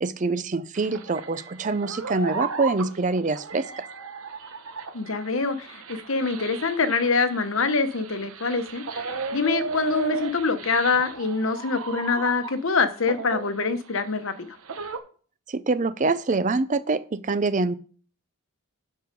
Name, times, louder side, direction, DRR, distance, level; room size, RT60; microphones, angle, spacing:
voice 1, 0.0-3.8 15.5-17.7, right 3 dB, 35° right, 14 dB, 0.5 m, -25 dB
sound 1, 0.7-12.7 13.1-15.0, right 4 dB, 75° right, 1.0 m, -35 dB
voice 2, 4.9-9.0 9.3-14.5, left 4 dB, 65° left, 10 dB, 1.0 m, -25 dB
12.0 x 4.7 x 5.2 m, 0.41 s
head